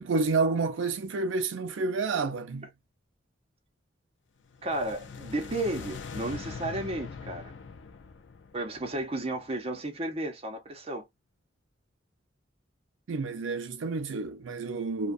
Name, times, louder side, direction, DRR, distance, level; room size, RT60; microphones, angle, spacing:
voice 1, 0.0-2.7 13.1-15.1, right 3 dB, 85° right, 0.5 m, -29 dB
sound 1, 4.5-9.6, left 5 dB, 70° left, 0.5 m, -42 dB
voice 2, 4.6-7.5 8.5-11.0, right 1 dB, 30° right, 0.7 m, -33 dB
2.3 x 2.2 x 2.5 m
head